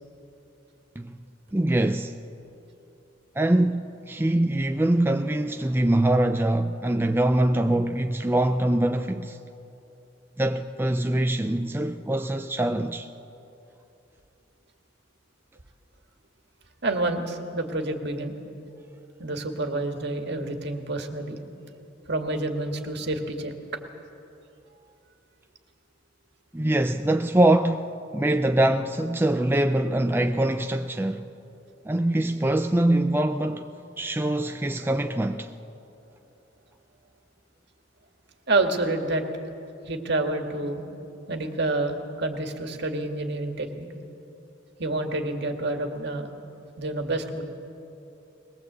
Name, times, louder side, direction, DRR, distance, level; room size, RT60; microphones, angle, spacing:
voice 1, 1.5-2.2 3.4-9.4 10.4-13.1 26.5-31.3 31.8-33.7 34.0-35.5, right 1 dB, 10° right, 0.5 m, -23 dB
voice 2, 16.8-18.4 19.2-21.4 22.1-23.6 34.0-34.5 34.8-34.9 38.5-39.2 39.8-40.8 41.3-43.9 44.8-46.3 46.8-47.4, right 2 dB, 60° right, 1.9 m, -28 dB
21.0 x 20.0 x 8.1 m
head